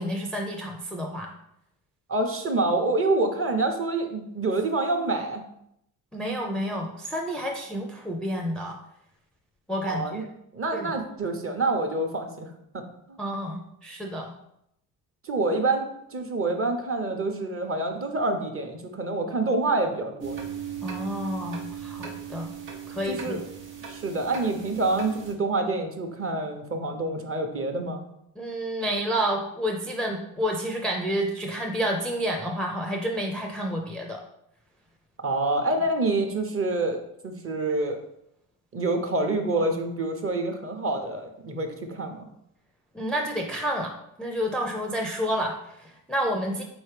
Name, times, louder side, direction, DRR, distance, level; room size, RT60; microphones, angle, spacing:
voice 1, 0.0-1.3 6.1-8.8 9.7-10.2 10.7-10.9 13.2-14.3 20.8-22.5 22.9-23.4 28.4-34.2 42.9-46.6, equal, ahead, 1 dB, 0.5 m, -30 dB
voice 2, 2.1-5.4 9.9-10.2 10.5-12.8 13.1-13.2 15.2-20.5 23.1-23.4 23.9-28.0 35.2-38.0 38.7-42.3, right 2 dB, 30° right, 5 dB, 0.8 m, -27 dB
sound 1, 20.2-25.3, right 8 dB, 80° right, 0.9 m, -38 dB
4.2 x 3.1 x 3.3 m, 0.77 s
hypercardioid pair, 55°, 45 cm